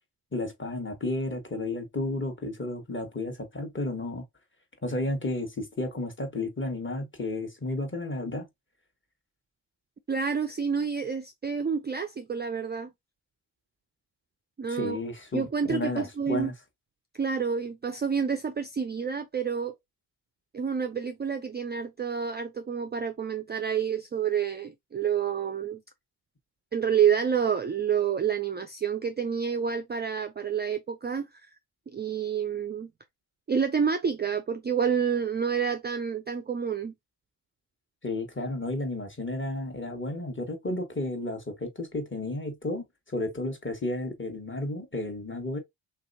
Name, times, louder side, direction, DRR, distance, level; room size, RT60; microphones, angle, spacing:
voice 1, 0.3-4.2 4.8-8.5 14.7-16.5 38.0-45.6, left 2 dB, 25° left, 1.3 m, -32 dB
voice 2, 10.1-12.9 14.6-15.0 15.3-16.5 17.2-19.8 20.5-25.8 26.7-31.3 31.9-32.9 33.5-36.9, right 7 dB, 20° right, 0.4 m, -28 dB
3.3 x 2.8 x 2.6 m
supercardioid pair, 50°, 49 cm